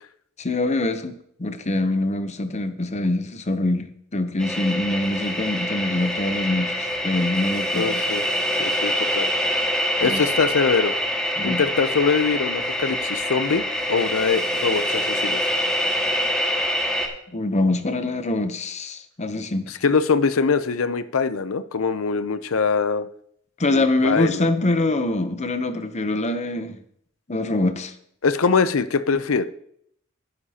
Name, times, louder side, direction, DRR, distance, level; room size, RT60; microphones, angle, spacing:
voice 1, 0.4-8.0 10.0-10.2 11.4-11.6 17.3-19.8 23.6-26.8 27.3-27.9, left 2 dB, 35° left, 9 dB, 0.8 m, -24 dB
sound 1, 4.4-17.1, equal, 5° left, 1.7 m, -25 dB
voice 2, 7.7-9.3 10.0-10.9 11.4-13.6 13.9-15.5 19.7-23.1 23.7-24.5 28.2-29.5, left 5 dB, 75° left, 12 dB, 0.6 m, -23 dB
15.0 x 9.6 x 2.9 m, 0.69 s
head